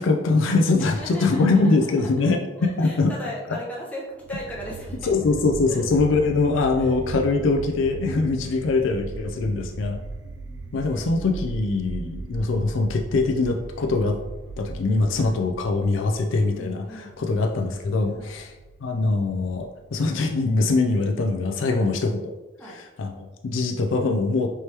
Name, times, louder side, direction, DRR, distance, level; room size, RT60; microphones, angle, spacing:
voice 1, 0.0-3.1 5.0-10.0 10.7-14.2 14.6-18.5 18.8-22.2 22.7-24.5, left 3 dB, 75° left, 3 dB, 0.4 m, -23 dB
voice 2, 0.8-6.3 6.7-6.9 8.2-8.7 9.0-9.4 10.2-11.6 12.0-12.4 15.2-15.4 16.5-17.5 18.1-18.4 21.6-21.9 22.6-22.8, equal, 10° left, -5 dB, 1.0 m, -40 dB
sound 1, 4.2-21.2, right 3 dB, 65° right, 0.4 m, -38 dB
4.6 x 3.2 x 2.9 m, 1.1 s
head